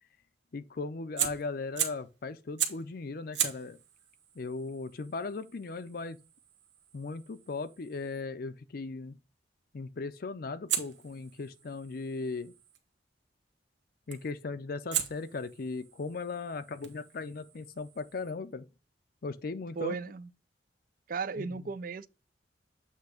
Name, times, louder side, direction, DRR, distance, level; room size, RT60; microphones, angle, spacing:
voice 1, 0.5-3.8 4.4-6.2 6.9-9.2 9.7-12.5 14.1-18.6 19.2-20.0 21.4-21.6, left 3 dB, 55° left, 0.5 m, -38 dB
Fire, 1.2-2.1 2.6-2.9 3.3-8.2 10.7-12.8 14.1-14.4 14.9-18.3, right 9 dB, 75° right, 1.4 m, -38 dB
voice 2, 19.8-20.3 21.1-22.1, right 5 dB, 50° right, 0.5 m, -35 dB
8.2 x 2.9 x 4.9 m
head